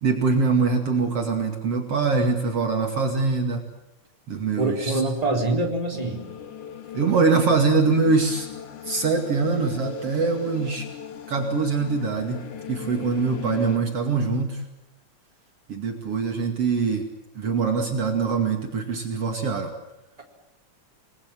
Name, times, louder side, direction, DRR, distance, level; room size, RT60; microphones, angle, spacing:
voice 1, 0.0-3.6 4.3-5.0 6.9-8.5 8.8-10.9 11.3-14.6 15.7-17.1 17.3-19.7, right 4 dB, 55° right, 4 dB, 3.3 m, -23 dB
voice 2, 4.6-6.2, right 2 dB, 10° right, 2 dB, 3.9 m, -24 dB
sound 1, 5.9-13.8, left 9 dB, 85° left, 3.6 m, -39 dB
28.5 x 21.0 x 7.6 m, 0.89 s
omnidirectional pair, 3.4 m